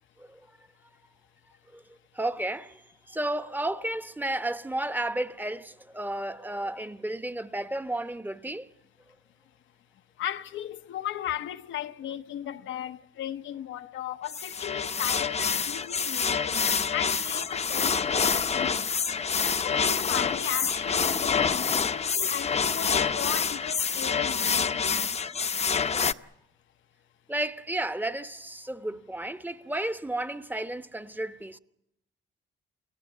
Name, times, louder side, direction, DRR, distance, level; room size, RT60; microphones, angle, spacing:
voice 1, 1.7-8.7 16.4-16.5 27.3-31.6, right 1 dB, 10° right, 1.0 m, -33 dB
voice 2, 10.2-19.2 19.6-25.2, left 11 dB, 75° left, 0.9 m, -37 dB
sound 1, 14.3-26.1, left 6 dB, 35° left, 0.8 m, -27 dB
29.0 x 18.5 x 7.3 m
cardioid pair, 90°, 20 cm